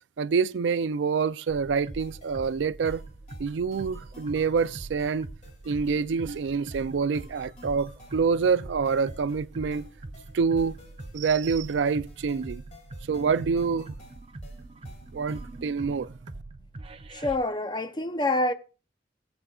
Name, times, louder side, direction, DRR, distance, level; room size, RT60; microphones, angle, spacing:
voice 1, 0.2-3.0 3.4-5.3 5.7-9.8 10.3-10.7 11.1-12.6 13.1-13.9 15.1-16.1, right 5 dB, 80° right, 0.4 m, -26 dB
sound 1, 1.5-17.4, right 2 dB, 30° right, 0.6 m, -43 dB
sound 2, 2.0-15.6, left 2 dB, 40° left, 2.6 m, -54 dB
voice 2, 17.1-18.5, left 2 dB, 25° left, 0.6 m, -27 dB
19.5 x 7.9 x 2.4 m
head